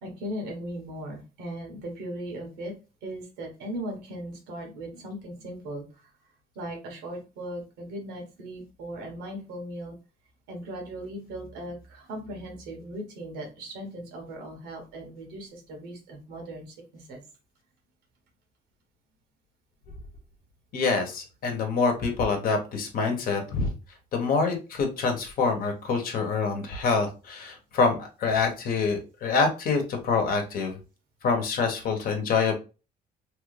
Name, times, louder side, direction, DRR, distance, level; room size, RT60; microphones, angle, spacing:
voice 1, 0.0-2.7 3.0-5.8 6.5-9.9 10.5-17.2, right 1 dB, 85° right, 2 dB, 1.3 m, -38 dB
voice 2, 20.7-23.7 24.1-30.7 31.2-32.5, left 4 dB, 60° left, 4 dB, 1.0 m, -26 dB
3.1 x 2.4 x 3.2 m, 0.32 s
cardioid pair, 110°, 17 cm